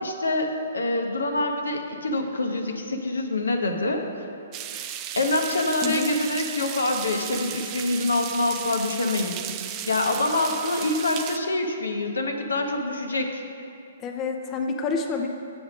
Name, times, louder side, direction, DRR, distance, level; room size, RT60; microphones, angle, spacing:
voice 1, 0.0-4.1 4.7-4.8 5.2-9.4 9.9-13.4, left 2 dB, 80° left, 4 dB, 0.8 m, -26 dB
sound 1, 4.5-11.4, right 10 dB, 30° right, 0.4 m, -35 dB
voice 2, 14.0-15.3, left 4 dB, 25° left, 3 dB, 0.6 m, -28 dB
8.0 x 5.2 x 5.1 m, 2.5 s
figure-of-eight pair, 120°, 0 cm